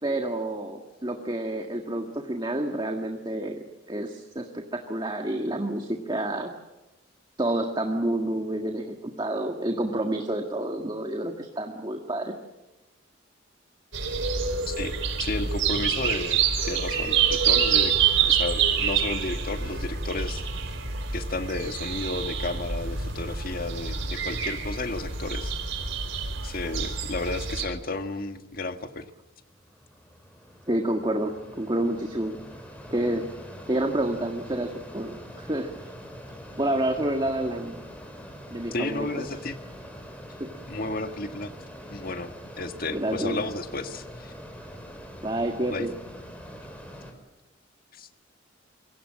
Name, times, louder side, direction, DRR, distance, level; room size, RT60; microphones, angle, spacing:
voice 1, 0.0-6.5 7.4-12.3 30.7-32.4 32.9-33.2 33.7-35.7 36.6-37.8 38.5-39.3 40.4-40.5 42.9-43.4 45.2-45.9, right 1 dB, 25° right, 3 dB, 1.8 m, -29 dB
sound 1, 13.9-27.6, right 6 dB, 85° right, 4.4 m, -27 dB
voice 2, 14.7-20.4 21.1-25.5 26.4-29.0 38.7-39.6 40.7-41.5 41.9-44.3 45.7-45.9 48.0-48.1, left 2 dB, 50° left, 7 dB, 1.6 m, -33 dB
Mechanisms, 29.1-47.1, equal, 5° left, 4.6 m, -44 dB
27.0 x 24.0 x 7.6 m, 1.1 s
head